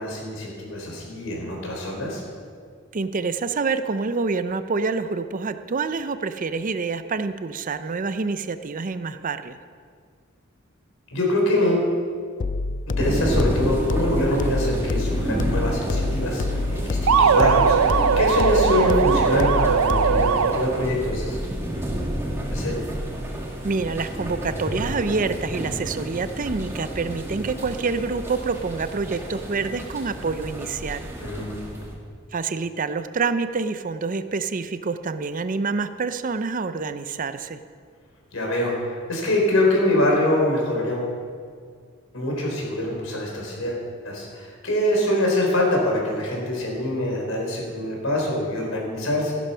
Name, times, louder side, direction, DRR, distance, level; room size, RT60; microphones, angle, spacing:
voice 1, 0.0-2.2 11.1-11.9 13.0-21.3 22.5-22.8 31.2-31.8 38.3-41.1 42.1-49.4, left 1 dB, 80° left, -1 dB, 4.2 m, -24 dB
voice 2, 2.9-9.6 23.6-31.1 32.3-37.6, right 4 dB, 40° right, 11 dB, 0.5 m, -27 dB
sound 1, 12.4-20.4, left 2 dB, 40° left, 0.4 m, -27 dB
sound 2, 13.0-31.9, equal, 15° right, 2.2 m, -30 dB
sound 3, 17.1-20.9, right 6 dB, 90° right, 0.6 m, -20 dB
15.0 x 11.5 x 5.6 m, 2.1 s
head